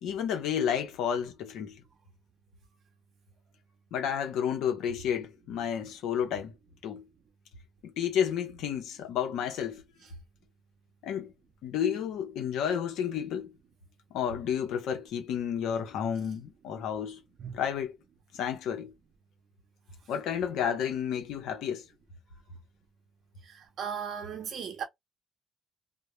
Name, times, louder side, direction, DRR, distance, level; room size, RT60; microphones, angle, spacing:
voice 1, 0.0-1.8 3.9-6.5 6.8-7.1 7.8-9.8 11.0-11.3 11.6-13.5 14.1-17.2 17.5-18.0 18.3-18.9 20.1-21.9, left 8 dB, 90° left, 0.7 m, -31 dB
voice 2, 23.5-24.8, right 7 dB, 65° right, 0.5 m, -37 dB
2.2 x 2.0 x 3.0 m
cardioid pair, 90°, 0 cm